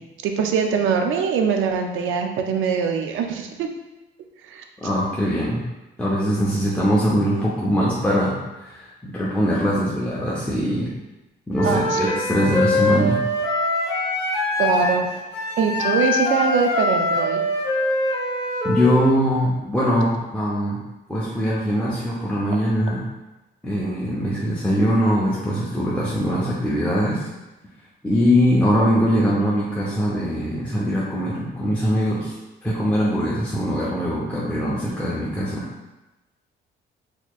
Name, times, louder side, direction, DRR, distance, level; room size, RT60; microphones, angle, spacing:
voice 1, 0.2-3.7 4.5-4.6 11.6-12.0 14.6-15.1 15.6-17.4, right 6 dB, 80° right, 4 dB, 0.5 m, -22 dB
voice 2, 4.8-5.6 6.0-10.9 11.5-13.2 18.6-20.8 21.1-23.0 23.6-27.3 28.0-32.4 32.6-35.7, equal, 5° left, -7 dB, 0.7 m, -22 dB
Wind instrument woodwind instrument, 11.5-19.0, left 2 dB, 30° left, 1.0 m, -23 dB
4.2 x 2.9 x 2.4 m, 1.1 s
cardioid pair, 90°, 20 cm